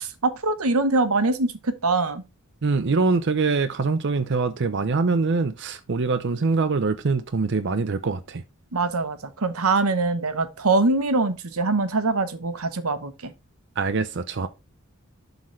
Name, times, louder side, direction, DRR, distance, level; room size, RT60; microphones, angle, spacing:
voice 1, 0.0-2.2 8.7-13.3, right 3 dB, 85° right, 1.0 m, -23 dB
voice 2, 2.6-8.4 13.8-14.5, right 4 dB, 55° right, 0.6 m, -24 dB
11.5 x 3.9 x 3.2 m
head